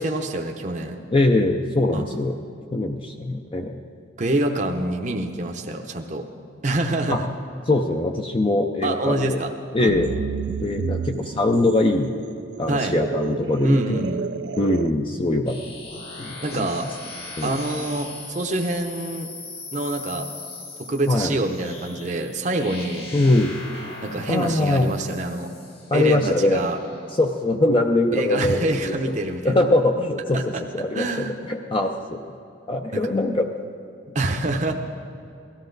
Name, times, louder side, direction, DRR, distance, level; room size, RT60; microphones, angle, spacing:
voice 1, 0.0-1.0 1.9-2.0 4.2-6.2 6.6-7.3 8.8-9.5 9.8-9.9 12.7-13.0 13.6-14.2 16.4-16.9 17.4-19.3 19.7-20.3 20.9-23.1 24.0-25.5 25.9-26.8 28.1-29.6 30.3-30.6 30.9-31.3 32.9-33.1 34.1-34.7, right 2 dB, 40° right, 3 dB, 0.7 m, -26 dB
voice 2, 1.1-2.3 2.7-3.8 7.1-7.2 7.7-9.4 9.7-10.1 10.6-12.1 12.6-14.1 14.6-15.8 16.2-16.7 17.4-17.6 21.1-21.4 23.1-23.6 24.3-24.9 25.9-26.6 27.1-28.9 29.4-30.4 30.7-32.2 32.7-33.5, left 2 dB, 30° left, 3 dB, 0.5 m, -22 dB
sound 1, 9.8-14.9, right 6 dB, 65° right, 0.3 m, -31 dB
sound 2, 15.5-27.1, left 3 dB, 55° left, 2.2 m, -39 dB
17.5 x 13.0 x 3.9 m, 2.6 s
head